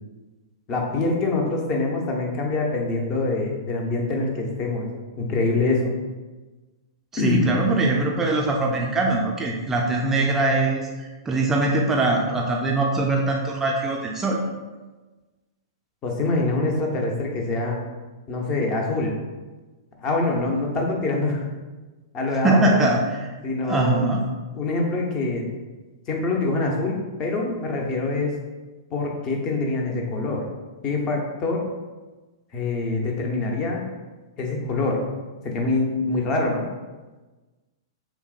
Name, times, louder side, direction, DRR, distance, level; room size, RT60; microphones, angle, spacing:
voice 1, 0.7-4.9 5.2-5.8 7.2-7.5 16.0-17.8 18.3-19.2 20.0-21.5 22.1-22.8 23.4-24.1 24.6-25.5 26.1-28.3 28.9-30.5 30.8-31.6 32.5-33.8 34.4-35.0 35.4-36.6, left 3 dB, 30° left, 0 dB, 0.7 m, -25 dB
voice 2, 7.1-14.4 22.4-23.2 23.6-24.2, right 2 dB, 15° right, -1 dB, 0.4 m, -22 dB
5.5 x 2.1 x 2.4 m, 1.2 s
figure-of-eight pair, 105°, 2 cm